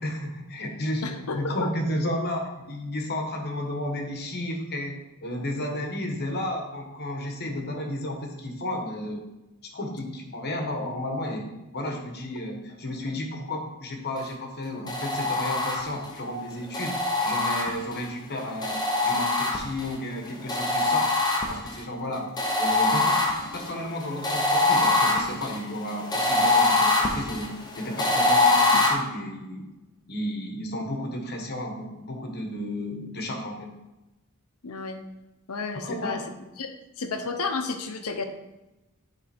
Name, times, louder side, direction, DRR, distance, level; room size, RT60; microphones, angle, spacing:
voice 1, 0.0-9.2 9.7-16.9 17.2-21.1 21.5-22.3 22.6-29.7 30.1-33.7 35.8-36.2, left 1 dB, 50° left, 2 dB, 1.2 m, -32 dB
voice 2, 1.0-1.7 28.7-28.8 34.6-35.0 35.5-36.2 36.6-36.7 37.0-38.3, left 4 dB, 70° left, 6 dB, 0.8 m, -31 dB
sound 1, 14.9-16.1 16.7-18.1 18.6-19.9 20.5-21.8 22.4-28.9, left 2 dB, 20° left, 0.9 m, -24 dB
9.3 x 3.5 x 4.3 m, 1.0 s
head